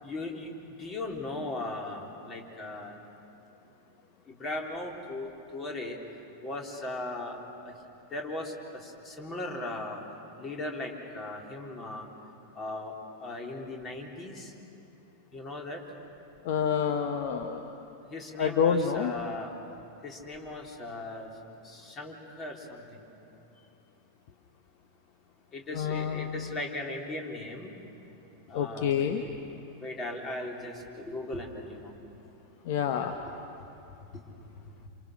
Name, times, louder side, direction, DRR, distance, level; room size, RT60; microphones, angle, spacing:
voice 1, 0.0-3.0 4.3-6.0 6.4-7.4 7.6-7.7 8.1-10.0 10.4-12.1 12.6-12.9 13.2-14.5 15.3-15.8 18.1-19.5 20.0-21.3 21.6-23.0 25.5-27.8 28.5-29.1 29.8-32.0 34.1-34.2, left 2 dB, 25° left, 1 dB, 3.8 m, -38 dB
voice 2, 16.4-17.8 18.4-19.1 25.7-26.6 28.5-29.2 32.6-33.1, left 7 dB, 50° left, 5 dB, 1.2 m, -28 dB
28.0 x 28.0 x 6.5 m, 2.8 s
figure-of-eight pair, 90°, 0 cm